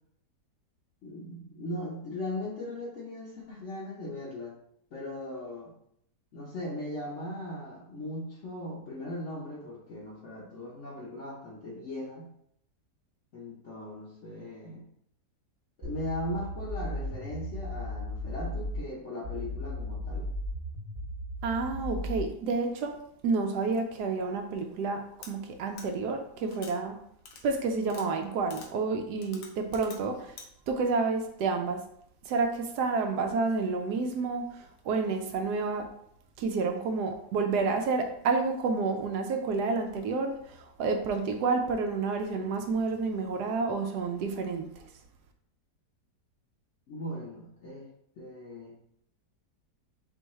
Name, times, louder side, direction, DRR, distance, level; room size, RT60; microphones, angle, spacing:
voice 1, 1.0-4.5 4.9-5.7 6.3-12.3 13.3-14.8 15.8-20.3 46.9-47.9 48.2-48.8, left 1 dB, 55° left, -5 dB, 1.0 m, -38 dB
sound 1, 15.8-18.8 19.2-22.3, equal, 45° right, 1.2 m, -36 dB
voice 2, 21.4-23.0 23.2-27.0 27.4-30.4 30.7-31.8 32.2-35.9 36.4-44.9, right 4 dB, 75° right, 5 dB, 1.1 m, -29 dB
sound 2, 25.2-25.3 25.8-25.9 26.5-26.7 27.3-27.4 27.9-28.1 28.5-28.7 29.2-30.0 30.4-30.5, left 5 dB, 80° left, 1.3 m, -46 dB
4.5 x 3.4 x 3.1 m, 0.72 s
omnidirectional pair, 1.8 m